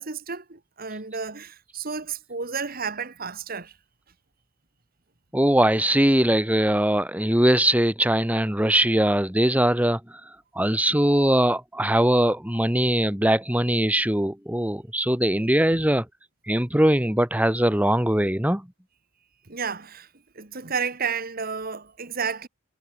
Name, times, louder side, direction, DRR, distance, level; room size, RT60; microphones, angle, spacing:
voice 1, 0.0-3.7 15.7-15.9 19.5-20.1 20.4-22.5, right 5 dB, 45° right, 1.8 m, -32 dB
voice 2, 5.3-10.0 10.6-16.0 16.5-18.6, right 1 dB, 5° right, 1.9 m, -21 dB
head